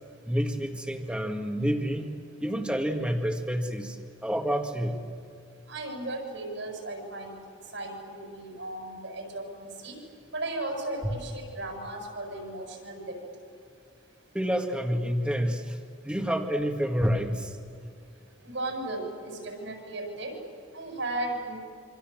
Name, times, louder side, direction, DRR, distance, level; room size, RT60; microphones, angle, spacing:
voice 1, 0.3-2.1 2.4-5.0 11.0-11.1 14.3-15.8 16.0-17.5, equal, 5° right, 3 dB, 2.0 m, -28 dB
voice 2, 5.7-7.4 7.7-10.0 10.3-13.2 18.4-20.3 20.7-21.6, right 2 dB, 70° right, 2 dB, 7.6 m, -35 dB
26.5 x 26.5 x 7.6 m, 2.3 s
head